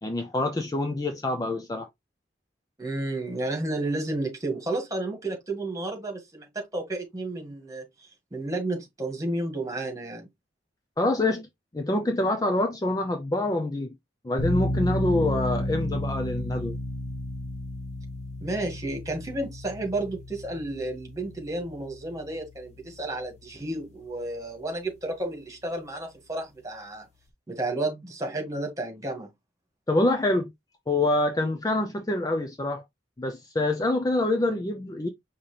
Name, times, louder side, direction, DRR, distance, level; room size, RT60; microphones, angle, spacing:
voice 1, 0.0-1.9 11.0-11.5 11.7-13.9 14.2-16.8 29.9-30.5 30.9-32.8 33.2-35.1, left 2 dB, 20° left, 0.5 m, -26 dB
voice 2, 2.8-10.3 18.4-27.1 27.5-29.3, right 2 dB, 20° right, 1.8 m, -32 dB
sound 1, 14.4-23.3, left 1 dB, 40° left, 1.3 m, -32 dB
5.4 x 2.8 x 3.3 m
head